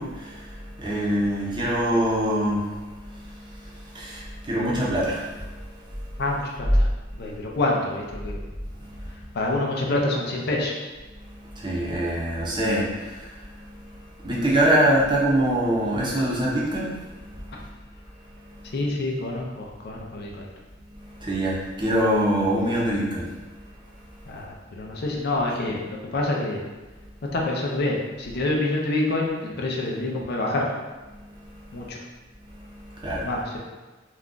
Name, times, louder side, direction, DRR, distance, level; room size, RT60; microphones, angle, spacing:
voice 1, 0.0-6.2 7.3-7.4 8.7-9.2 11.1-17.7 18.3-18.8 20.9-24.4 31.1-31.9 32.4-33.3, right 1 dB, 25° right, -5 dB, 0.6 m, -26 dB
voice 2, 6.2-6.9 7.2-8.4 9.3-10.8 18.7-20.5 24.3-25.8 26.1-26.6 27.3-30.7 31.7-32.0 33.2-33.6, left 2 dB, 55° left, -1 dB, 0.5 m, -27 dB
2.4 x 2.2 x 3.7 m, 1.2 s
head